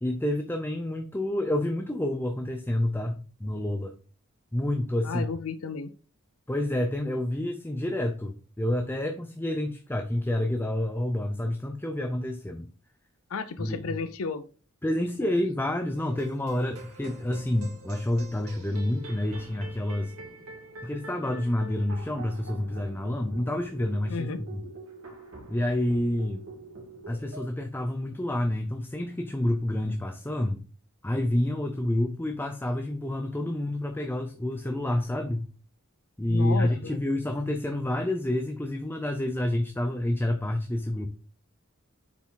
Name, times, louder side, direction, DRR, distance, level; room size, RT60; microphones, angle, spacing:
voice 1, 0.0-3.9 4.5-5.3 6.5-12.7 13.6-13.9 14.8-20.1 20.8-24.6 25.5-26.4 27.1-30.6 31.0-35.5 36.2-41.1, left 1 dB, 10° left, 6 dB, 0.6 m, -28 dB
voice 2, 5.0-5.9 13.3-14.4 15.2-15.3 24.1-24.4 36.3-37.0, left 4 dB, 70° left, 11 dB, 0.6 m, -33 dB
sound 1, 15.9-27.5, right 2 dB, 80° right, 2.2 m, -45 dB
7.0 x 5.0 x 3.9 m, 0.37 s
head